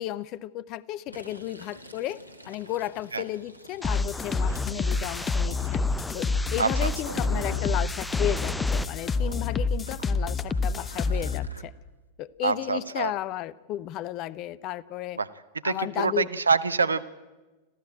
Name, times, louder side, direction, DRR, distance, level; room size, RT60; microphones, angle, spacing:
voice 1, 0.0-5.8 6.1-6.3 6.5-11.7 12.2-15.2 15.6-16.3, left 13 dB, 40° left, 19 dB, 0.7 m, -33 dB
Fill (with liquid), 1.0-7.8 8.3-11.6, equal, 85° left, 1.6 m, -47 dB
sound 1, 3.8-11.5, left 4 dB, 20° left, 1.1 m, -27 dB
sound 2, 3.8-8.8, left 1 dB, 5° left, 0.7 m, -37 dB
voice 2, 12.4-13.1 15.2-15.3 15.6-17.0, right 5 dB, 75° right, 15 dB, 0.9 m, -25 dB
26.0 x 14.5 x 8.9 m, 1.2 s
figure-of-eight pair, 90°, 0 cm